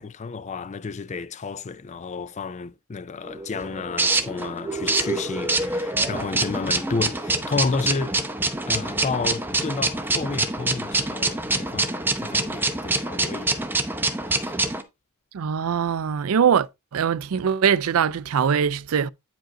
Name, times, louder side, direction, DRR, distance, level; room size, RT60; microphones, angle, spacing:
voice 1, 0.0-8.2 8.7-13.7 14.3-14.6, left 4 dB, 30° left, 0.4 m, -31 dB
sound 1, 3.2-14.8, right 2 dB, 10° right, 0.8 m, -26 dB
voice 2, 15.3-16.7 16.9-19.1, right 7 dB, 70° right, 0.4 m, -22 dB
9.0 x 5.1 x 3.7 m
head